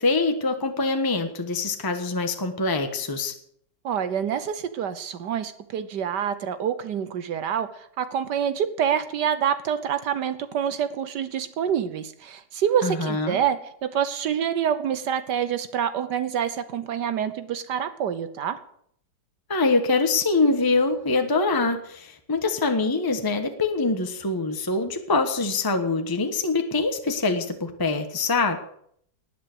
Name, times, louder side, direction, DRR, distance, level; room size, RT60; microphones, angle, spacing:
voice 1, 0.0-3.3 12.8-13.4 19.5-28.6, left 3 dB, 15° left, 6 dB, 1.2 m, -24 dB
voice 2, 3.8-18.6, right 8 dB, 75° right, 12 dB, 1.5 m, -27 dB
19.0 x 7.7 x 7.9 m, 0.67 s
omnidirectional pair, 1.9 m